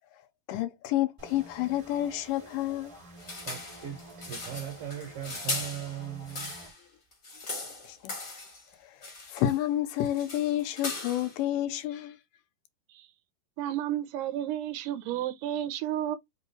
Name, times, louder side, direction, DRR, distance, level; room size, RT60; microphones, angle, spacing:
voice 1, 0.5-2.9 7.5-8.1 9.3-12.2, left 13 dB, 85° left, 2.3 m, -30 dB
sound 1, 1.2-6.7, right 1 dB, 20° right, 0.8 m, -50 dB
sound 2, 3.2-6.8 7.1-8.6 9.0-9.6 9.9-11.4, left 3 dB, 50° left, 0.9 m, -39 dB
voice 2, 3.4-6.5, right 11 dB, 55° right, 1.7 m, -39 dB
voice 3, 13.6-16.2, right 11 dB, 75° right, 2.1 m, -32 dB
5.3 x 2.4 x 3.1 m
omnidirectional pair, 3.9 m